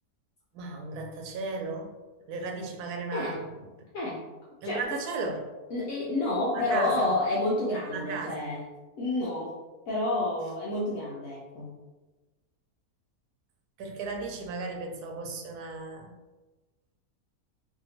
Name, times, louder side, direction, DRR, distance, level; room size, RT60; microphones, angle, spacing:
voice 1, 0.5-1.9 2.3-3.4 4.6-5.5 6.5-7.1 7.9-8.5 13.8-16.2, right 3 dB, 85° right, 2 dB, 1.1 m, -35 dB
voice 2, 5.7-8.6 9.0-9.6 9.9-11.7, left 2 dB, 70° left, -5 dB, 1.0 m, -29 dB
2.7 x 2.7 x 2.8 m, 1.2 s
omnidirectional pair, 1.6 m